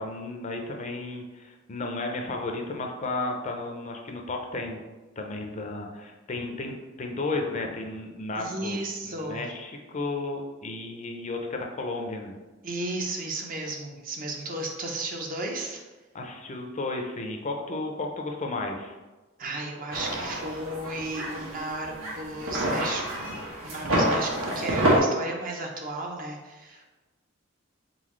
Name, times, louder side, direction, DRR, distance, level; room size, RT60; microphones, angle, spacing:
voice 1, 0.0-4.8 5.2-8.8 9.0-12.4 16.1-19.0, left 2 dB, 35° left, 2 dB, 0.5 m, -33 dB
voice 2, 8.4-9.5 12.6-15.8 19.4-23.2 23.6-26.9, right 2 dB, 45° right, 1 dB, 0.7 m, -34 dB
sound 1, 19.9-25.0, right 1 dB, 85° right, 1.3 m, -28 dB
3.9 x 3.9 x 3.1 m, 1.2 s
head